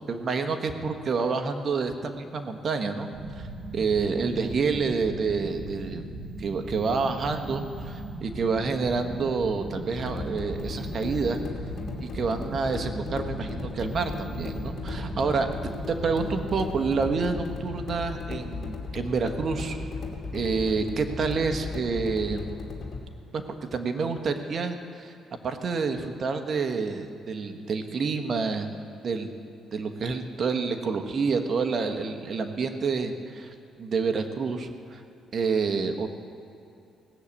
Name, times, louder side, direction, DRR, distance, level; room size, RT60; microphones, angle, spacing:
voice 1, 0.0-3.1 3.4-3.5 3.7-6.0 6.4-11.4 12.0-15.5 15.9-19.8 20.3-22.6 23.3-25.1 25.4-28.7 29.0-29.4 29.7-35.0 35.3-36.1, right 4 dB, 50° right, 7 dB, 1.3 m, -28 dB
sound 1, 3.1-17.6, right 2 dB, 80° right, 1.8 m, -38 dB
sound 2, 10.0-23.0, left 4 dB, 55° left, 2.5 m, -36 dB
18.0 x 6.7 x 8.6 m, 2.7 s
cardioid pair, 90°, 0 cm